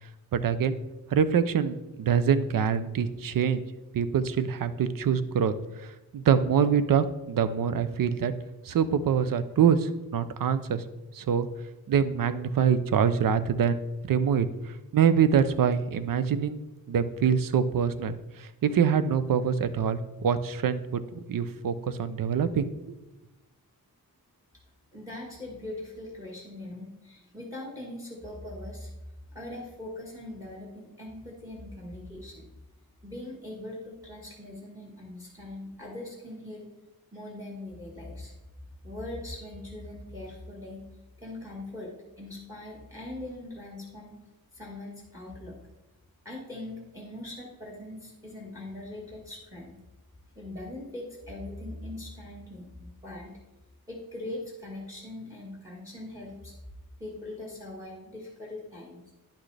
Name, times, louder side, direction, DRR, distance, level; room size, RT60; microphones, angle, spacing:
voice 1, 0.3-0.8 1.1-3.6 3.9-5.5 5.8-8.3 8.6-10.8 11.1-11.5 11.9-16.6 16.9-22.7, right 7 dB, 65° right, 13 dB, 0.6 m, -25 dB
voice 2, 24.9-28.9 29.3-32.5 33.0-36.7 37.1-38.3 38.8-40.9 41.2-44.2 44.5-45.6 46.2-49.7 50.3-53.4 53.9-56.5 57.0-59.0, left 1 dB, 10° right, -2 dB, 1.4 m, -41 dB
10.0 x 6.0 x 3.3 m, 1.0 s
wide cardioid pair, 145°, 37 cm